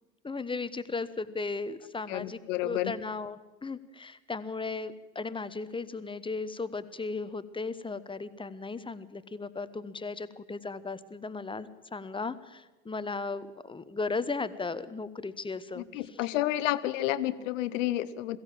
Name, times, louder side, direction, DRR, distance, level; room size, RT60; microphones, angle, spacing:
voice 1, 0.2-15.8, left 4 dB, 10° left, 13 dB, 1.1 m, -36 dB
voice 2, 2.1-2.9 15.8-18.4, left 14 dB, 65° left, 15 dB, 1.1 m, -30 dB
22.0 x 15.5 x 7.6 m, 1.1 s
figure-of-eight pair, 65°, 42 cm